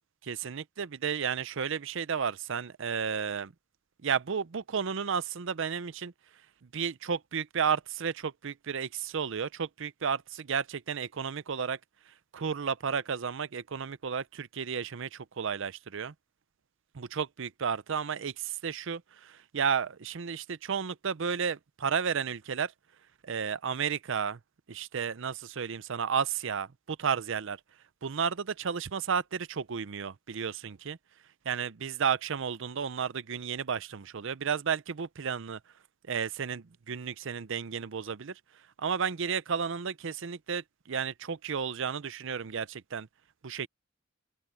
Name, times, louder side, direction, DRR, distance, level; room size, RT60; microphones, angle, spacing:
voice 1, 0.2-3.5 4.0-6.1 6.7-11.8 12.3-16.1 16.9-22.7 23.2-24.4 24.7-27.6 28.0-31.0 31.5-35.6 36.1-38.4 38.8-43.1 43.4-43.7, right 6 dB, 65° right, 0.6 m, -32 dB
open air
head